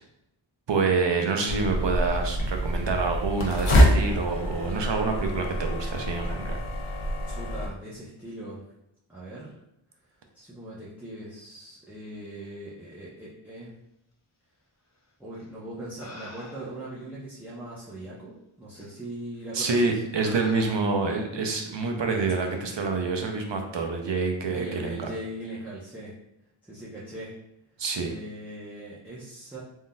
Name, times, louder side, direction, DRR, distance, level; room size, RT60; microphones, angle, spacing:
voice 1, 0.7-6.6 19.5-25.1 27.8-28.1, right 4 dB, 60° right, 3 dB, 0.6 m, -27 dB
sound 1, 1.5-7.7, equal, 80° left, 0.7 m, -25 dB
voice 2, 7.2-8.6 9.1-9.6 10.3-13.7 15.2-20.0 24.5-26.2 26.6-27.4 28.0-29.6, right 1 dB, 5° right, -9 dB, 0.7 m, -40 dB
sound 2, 15.3-15.5 16.0-16.9 17.8-17.9 18.7-18.9 19.6-19.8 20.2-21.2 22.5-22.7, left 2 dB, 35° left, 0.6 m, -46 dB
3.6 x 2.6 x 2.2 m, 0.82 s
wide cardioid pair, 50°, 50 cm